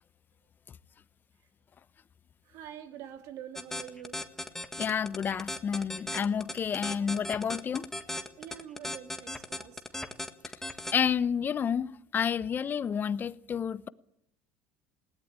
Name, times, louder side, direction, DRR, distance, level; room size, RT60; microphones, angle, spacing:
voice 1, 2.5-4.2 8.4-10.1, right 10 dB, 65° right, 2.5 m, -46 dB
sound 1, 3.6-11.0, left 1 dB, 5° left, 1.7 m, -37 dB
voice 2, 4.8-7.9 10.9-13.9, left 7 dB, 35° left, 0.9 m, -30 dB
20.0 x 17.5 x 8.9 m
supercardioid pair, 95°, 6 cm